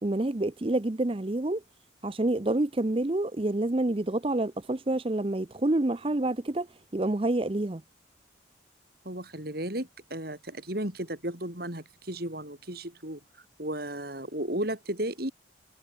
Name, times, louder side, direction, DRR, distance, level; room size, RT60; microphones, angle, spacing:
voice 1, 0.0-1.6 2.0-7.8, right 2 dB, 30° right, 0.6 m, -28 dB
voice 2, 9.0-13.2 13.6-15.3, right 1 dB, 50° right, 4.9 m, -34 dB
head